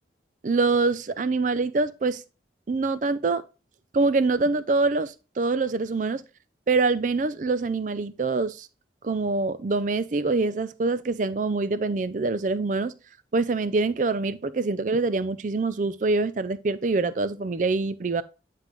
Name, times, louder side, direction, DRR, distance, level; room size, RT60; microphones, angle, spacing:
voice 1, 0.4-2.2 2.7-3.4 3.9-6.2 6.7-8.7 9.0-12.9 13.3-18.2, right 3 dB, 45° right, 0.4 m, -25 dB
9.6 x 3.8 x 3.1 m
head